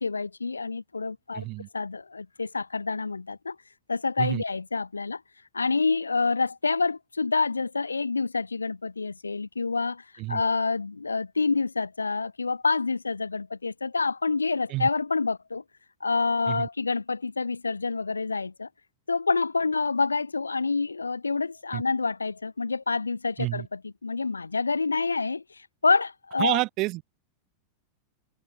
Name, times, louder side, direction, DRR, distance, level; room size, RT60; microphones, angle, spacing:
voice 1, 0.0-1.5 1.7-3.6 3.9-5.2 5.5-15.6 16.0-18.7 19.1-26.6, left 4 dB, 80° left, 2.0 m, -27 dB
voice 2, 1.3-1.7 4.2-4.4 10.2-10.4 14.7-14.9 16.5-16.7 21.7-21.8 23.4-23.7 26.4-27.1, right 21 dB, 40° right, 3.5 m, -29 dB
figure-of-eight pair, 90°, 0 cm